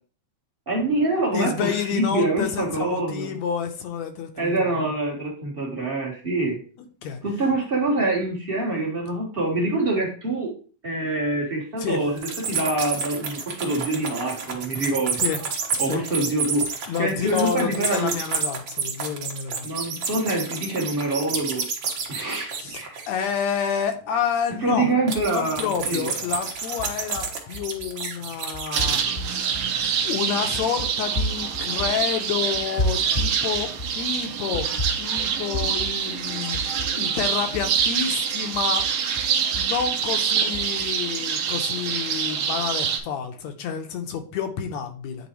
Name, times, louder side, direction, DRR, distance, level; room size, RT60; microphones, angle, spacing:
voice 1, 0.7-3.3 4.4-6.6 7.2-10.5 10.8-15.2 15.8-18.1 19.6-21.6 22.1-23.0 24.6-26.1, right 2 dB, 40° right, -2 dB, 0.8 m, -25 dB
voice 2, 1.3-4.9 7.0-7.2 11.8-12.0 15.2-15.4 15.9-16.0 16.9-19.7 22.3-22.8 23.1-24.9 25.3-29.8 30.0-34.7 35.0-36.6 37.0-38.9 39.5-45.3, left 7 dB, 75° left, 6 dB, 1.8 m, -29 dB
sound 1, 12.2-23.5 25.1-29.0, right 5 dB, 55° right, 1.4 m, -30 dB
sound 2, 25.0-25.8 26.3-27.9 28.3-38.0 38.3-40.9, equal, 35° left, 0.8 m, -34 dB
sound 3, 28.7-43.0, right 7 dB, 80° right, 1.2 m, -26 dB
9.5 x 3.9 x 3.0 m, 0.40 s
omnidirectional pair, 3.5 m